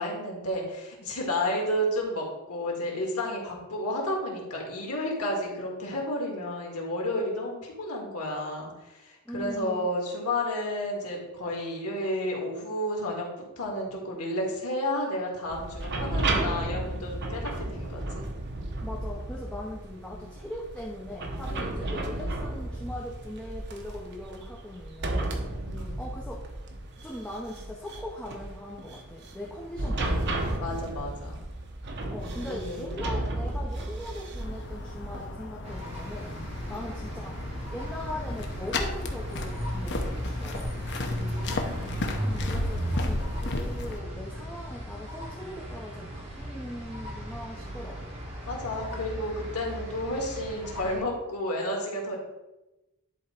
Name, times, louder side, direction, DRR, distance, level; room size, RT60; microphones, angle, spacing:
voice 1, 0.0-18.2 20.1-20.2 21.5-22.3 25.7-26.0 30.6-31.4 32.5-33.3 36.6-36.9 41.1-42.0 48.5-52.2, left 1 dB, 90° left, -1 dB, 2.1 m, -32 dB
voice 2, 9.2-9.9 18.8-25.7 26.0-26.5 27.0-30.4 32.1-36.3 36.7-37.4 37.7-40.7 42.2-48.1, left 1 dB, 5° left, -4 dB, 0.8 m, -40 dB
sound 1, 15.5-35.3, right 1 dB, 50° right, 1.0 m, -33 dB
sound 2, 34.4-44.0, left 2 dB, 50° left, 0.9 m, -34 dB
sound 3, 35.6-51.0, equal, 30° right, 2.1 m, -36 dB
11.0 x 3.7 x 4.4 m, 1.0 s
head